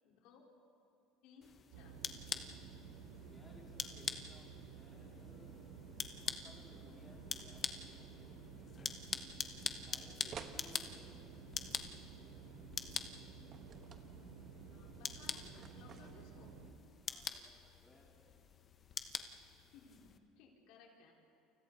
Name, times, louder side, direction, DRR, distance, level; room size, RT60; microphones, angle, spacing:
voice 1, 0.0-0.4 1.2-2.0 14.7-15.5 15.7-16.6 19.7-21.1, left 5 dB, 65° left, -1 dB, 4.0 m, -61 dB
sound 1, 1.4-20.2, left 6 dB, 25° left, 1.0 m, -46 dB
sound 2, 1.7-16.7, right 5 dB, 75° right, 2.8 m, -53 dB
voice 2, 3.3-5.5 6.2-9.3 9.6-11.7 17.1-18.1, left 1 dB, 10° left, -4 dB, 3.6 m, -63 dB
sound 3, 10.3-10.6 13.5-14.1 15.6-16.4, right 7 dB, 30° right, 1.2 m, -51 dB
29.5 x 29.0 x 4.0 m, 2.8 s
cardioid pair, 155°, 0 cm